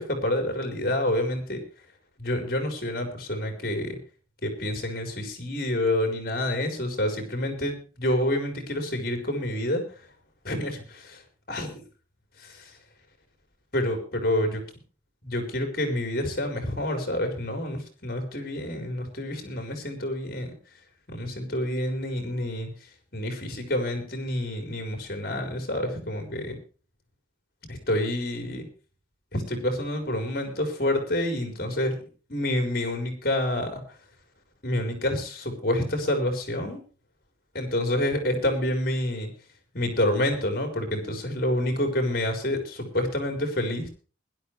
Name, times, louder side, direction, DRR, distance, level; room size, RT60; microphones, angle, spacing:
voice 1, 0.0-1.6 2.2-4.0 4.4-9.8 10.4-11.2 11.5-11.7 12.4-12.7 13.7-14.6 15.3-20.5 21.1-22.7 23.1-26.6 27.7-28.7 29.3-32.0 32.3-33.8 34.6-36.8 37.5-39.3 39.7-43.9, left 1 dB, 55° left, 5 dB, 4.5 m, -28 dB
20.5 x 12.0 x 3.3 m, 0.36 s
head